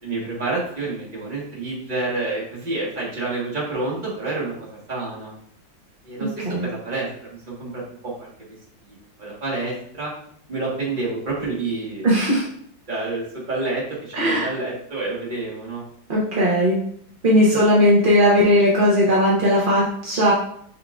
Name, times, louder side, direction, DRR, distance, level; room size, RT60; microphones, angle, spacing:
voice 1, 0.0-4.5 4.9-5.3 6.0-8.3 9.2-10.1 10.5-12.1 12.9-15.8 17.4-17.6, right 3 dB, 25° right, -5 dB, 1.3 m, -28 dB
voice 2, 6.2-6.7 12.0-12.5 14.1-14.5 16.1-16.8 17.2-20.3, equal, 50° right, -5 dB, 0.6 m, -18 dB
5.6 x 3.6 x 2.4 m, 0.64 s
omnidirectional pair, 2.1 m